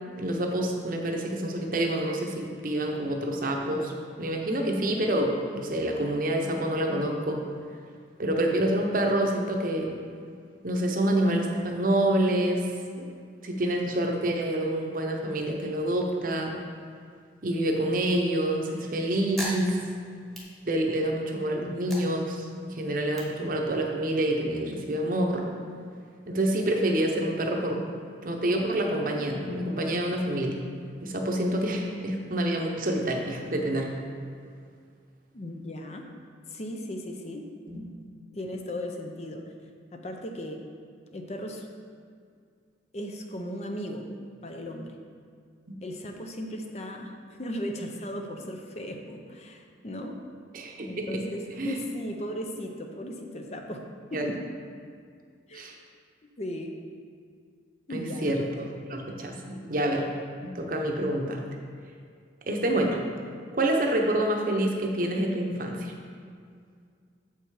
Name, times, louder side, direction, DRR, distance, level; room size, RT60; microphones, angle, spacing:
voice 1, 0.1-3.9 4.2-7.4 8.2-9.9 10.6-12.6 13.0-13.1 13.4-16.6 17.4-19.8 20.6-25.4 26.3-27.9 28.2-30.6 31.0-33.9 37.7-37.8 50.5-51.2 51.6-51.8 54.1-54.3 55.5-55.7 57.9-60.1 60.5-61.4 62.5-63.0 63.5-65.9, right 1 dB, 45° right, 2 dB, 0.8 m, -27 dB
sound 1, 19.3-21.2 21.6-24.2, equal, ahead, 1.2 m, -41 dB
voice 2, 35.3-36.0 36.4-37.4 37.7-38.0 38.3-39.4 39.9-40.6 41.1-41.7 42.9-45.0 45.8-50.2 50.9-54.4 55.5-55.7 56.2-56.7 57.9-58.4 59.5-59.7, equal, 35° left, 3 dB, 0.6 m, -37 dB
7.3 x 5.6 x 4.8 m, 2.2 s
head